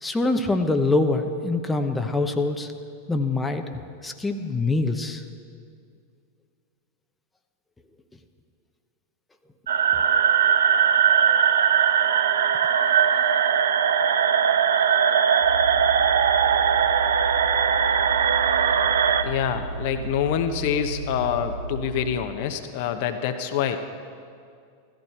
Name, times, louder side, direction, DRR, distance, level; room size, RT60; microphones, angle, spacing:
voice 1, 0.0-2.7 3.1-5.2, left 2 dB, 10° left, 5 dB, 0.9 m, -24 dB
sound 1, 9.7-19.2, right 8 dB, 70° right, 0.6 m, -20 dB
sound 2, 15.4-22.3, right 2 dB, 90° left, 2.6 m, -34 dB
voice 2, 19.2-23.8, left 9 dB, 50° left, 7 dB, 1.0 m, -26 dB
15.5 x 14.0 x 4.5 m, 2.3 s
figure-of-eight pair, 90°, 0 cm